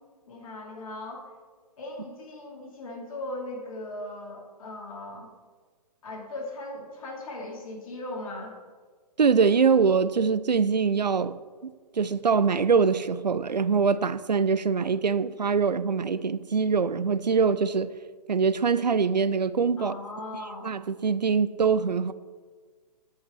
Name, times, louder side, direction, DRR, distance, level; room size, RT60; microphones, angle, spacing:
voice 1, 0.3-1.3 1.8-5.3 6.0-8.5 19.8-20.7, left 1 dB, 55° left, 2.5 m, -38 dB
voice 2, 9.2-11.4 11.6-17.9 18.3-20.0 20.6-22.1, right 5 dB, 90° right, 0.5 m, -23 dB
16.5 x 5.6 x 3.1 m
figure-of-eight pair, 130°, 21 cm